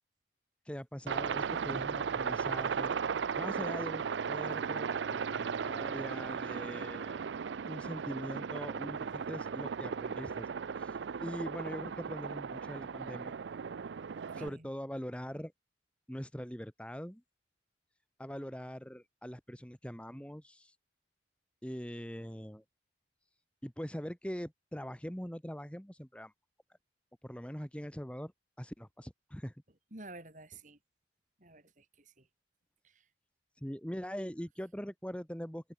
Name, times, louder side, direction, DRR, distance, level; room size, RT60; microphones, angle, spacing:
voice 1, 0.6-2.9 3.4-7.2 7.7-10.5 10.8-13.3 14.3-15.5 16.1-17.2 18.2-20.8 21.6-22.6 23.6-26.3 27.2-28.3 28.6-29.5 33.6-35.7, equal, 5° left, 1.5 m, -42 dB
Aircraft, 1.1-14.5, right 6 dB, 75° right, 0.4 m, -36 dB
voice 2, 14.3-14.7 29.9-30.8 31.4-32.3 32.8-33.0, right 2 dB, 45° right, 6.2 m, -51 dB
open air
head